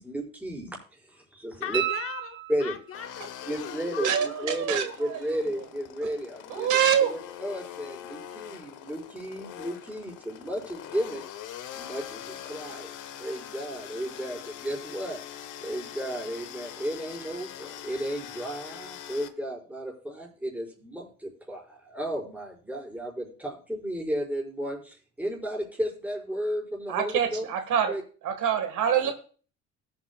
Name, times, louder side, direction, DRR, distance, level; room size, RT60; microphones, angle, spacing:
voice 1, 0.0-1.8 2.5-2.7 3.5-6.7 7.0-11.2 11.7-12.9 13.2-15.2 15.6-27.4 27.9-28.0 29.0-29.1, equal, 5° right, 5.2 m, -33 dB
voice 2, 1.6-4.5, left 8 dB, 45° left, 0.7 m, -39 dB
sound 1, 1.7-3.1 5.9-6.0, right 11 dB, 35° right, 0.6 m, -32 dB
sound 2, 2.9-19.3, left 10 dB, 75° left, 1.1 m, -43 dB
voice 3, 4.0-5.2 6.5-7.1 26.9-27.9 28.2-29.1, right 8 dB, 75° right, 1.7 m, -25 dB
19.0 x 8.2 x 2.3 m
cardioid pair, 125°, 31 cm